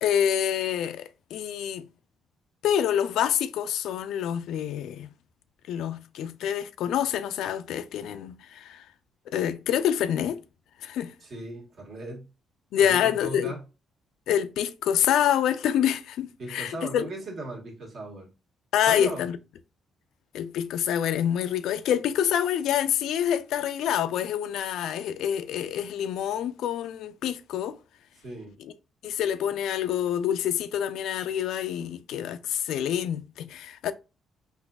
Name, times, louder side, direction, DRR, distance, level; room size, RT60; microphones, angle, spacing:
voice 1, 0.0-1.8 2.6-5.1 5.7-8.8 9.3-10.4 10.8-11.1 12.7-13.5 14.3-17.1 18.7-19.4 20.3-27.8 29.0-33.9, left 10 dB, 80° left, 0.3 m, -27 dB
voice 2, 11.2-12.3 12.7-13.6 16.4-18.3 18.9-19.2 28.2-28.6, right 2 dB, 60° right, 1.6 m, -37 dB
4.0 x 2.6 x 2.2 m
cardioid pair, 90°, 0 cm